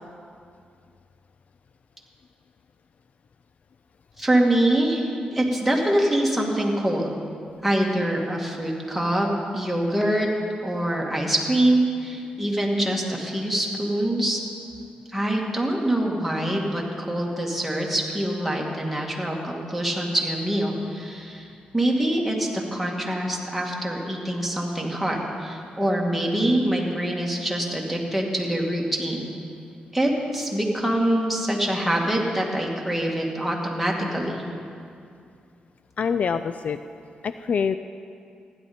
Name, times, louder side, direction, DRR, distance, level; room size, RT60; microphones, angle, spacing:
voice 1, 4.2-7.1 7.6-9.3 9.5-10.3 10.6-14.4 15.1-21.5 21.7-29.3 29.9-34.4, right 1 dB, ahead, -2 dB, 2.1 m, -24 dB
voice 2, 36.0-36.8 37.2-37.8, left 6 dB, 55° left, 11 dB, 0.3 m, -25 dB
15.5 x 10.5 x 4.3 m, 2.4 s
cardioid pair, 80°, 3 cm